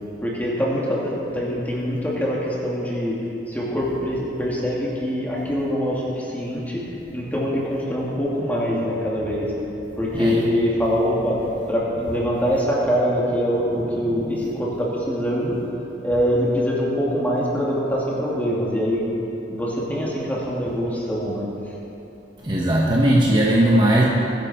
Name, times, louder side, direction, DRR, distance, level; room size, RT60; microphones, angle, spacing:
voice 1, 0.2-3.2 3.5-6.8 7.1-9.5 10.0-11.4 11.7-15.6 16.0-19.0 19.5-21.7, equal, 10° left, -5 dB, 2.6 m, -24 dB
voice 2, 22.4-24.0, right 1 dB, 25° right, -4 dB, 1.3 m, -18 dB
22.5 x 10.5 x 4.5 m, 2.9 s
head